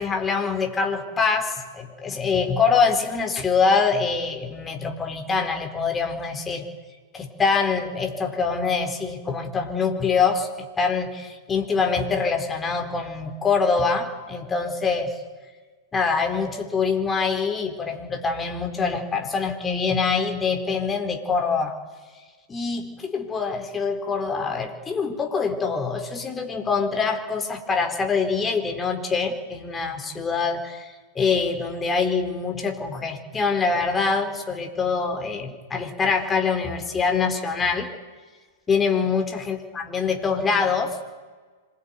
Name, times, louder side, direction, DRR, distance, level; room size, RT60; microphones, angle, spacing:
voice 1, 0.0-6.7 7.1-10.5 10.8-15.1 15.9-21.7 22.5-37.9 38.7-41.0, left 5 dB, 20° left, 4 dB, 4.3 m, -24 dB
26.5 x 21.5 x 9.5 m, 1.4 s
figure-of-eight pair, 100°, 0 cm